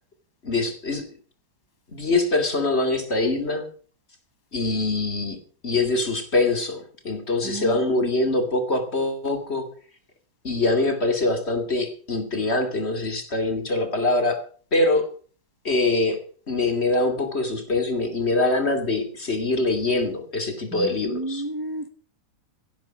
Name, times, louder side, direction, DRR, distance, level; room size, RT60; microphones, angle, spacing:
voice 1, 0.4-1.1 1.9-3.7 4.5-5.4 5.6-9.7 10.4-14.4 14.7-15.1 15.6-16.2 16.5-21.4, left 2 dB, 30° left, 2.8 m, -24 dB
voice 2, 7.4-8.1 20.7-21.9, right 2 dB, 15° right, 1.0 m, -32 dB
17.0 x 10.5 x 6.0 m
omnidirectional pair, 2.1 m